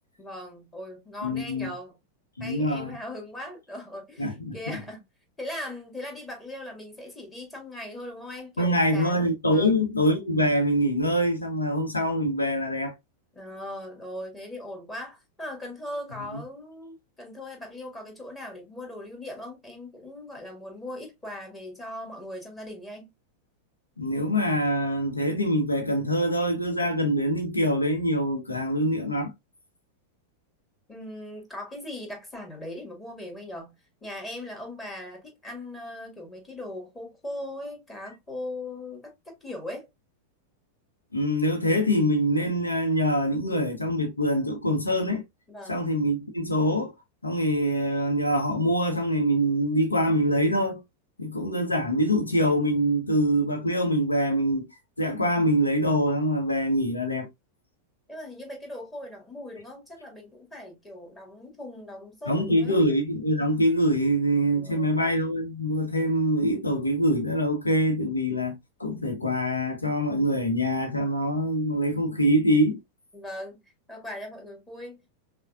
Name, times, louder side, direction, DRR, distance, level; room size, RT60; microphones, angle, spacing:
voice 1, 0.2-2.0 2.4-5.0 5.4-9.8 13.3-23.1 30.9-33.7 34.0-39.9 45.5-45.9 58.1-62.8 64.5-65.0 73.1-73.6 73.9-75.1, left 1 dB, 15° left, 1.8 m, -39 dB
voice 2, 1.2-1.7 2.4-3.0 4.2-4.6 8.6-12.9 16.3-16.4 24.0-29.3 41.1-45.2 45.7-46.9 47.2-50.8 51.2-54.7 55.0-57.3 62.3-72.8, equal, 80° left, 1.1 m, -24 dB
5.5 x 2.5 x 2.4 m
figure-of-eight pair, 90°, 0 cm